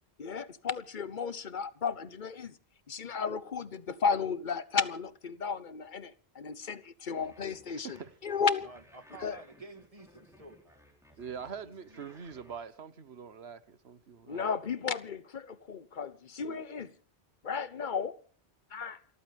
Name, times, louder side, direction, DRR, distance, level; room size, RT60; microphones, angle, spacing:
voice 1, 0.2-2.6 2.9-8.7 9.2-9.4 14.3-16.9 17.4-18.2 18.7-19.0, left 5 dB, 50° left, 1.1 m, -34 dB
sound 1, 7.2-12.6, equal, 5° right, 4.3 m, -60 dB
voice 2, 7.7-8.1 11.2-14.5, right 6 dB, 80° right, 1.4 m, -44 dB
voice 3, 8.6-12.2, right 2 dB, 35° right, 1.6 m, -53 dB
28.5 x 14.0 x 3.5 m
omnidirectional pair, 1.1 m